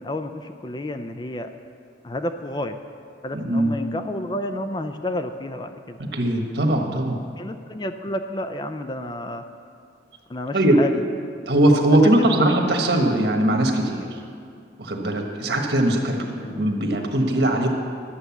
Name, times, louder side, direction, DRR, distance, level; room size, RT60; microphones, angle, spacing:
voice 1, 0.0-1.5 2.0-2.8 3.2-6.0 7.4-9.4 10.3-11.0 12.0-12.5 16.4-16.7, left 1 dB, 25° left, 8 dB, 0.4 m, -30 dB
voice 2, 3.3-3.7 6.0-7.2 10.5-10.8 11.5-14.2 14.8-17.7, right 1 dB, 65° right, 2 dB, 1.4 m, -20 dB
11.5 x 7.9 x 7.1 m, 2.4 s
head